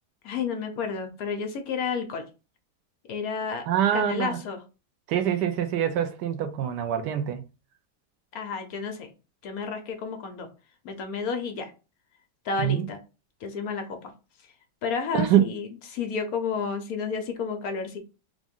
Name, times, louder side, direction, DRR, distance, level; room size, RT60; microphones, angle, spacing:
voice 1, 0.2-2.2 3.1-3.6 3.9-4.6 8.3-9.1 9.4-10.5 10.8-11.7 12.4-13.0 13.4-14.1 14.8-18.0, left 5 dB, 65° left, 1.0 m, -31 dB
voice 2, 3.7-4.4 5.1-7.4 12.6-12.9 15.1-15.4, right 10 dB, 80° right, 1.2 m, -24 dB
3.6 x 2.5 x 3.5 m
omnidirectional pair, 1.8 m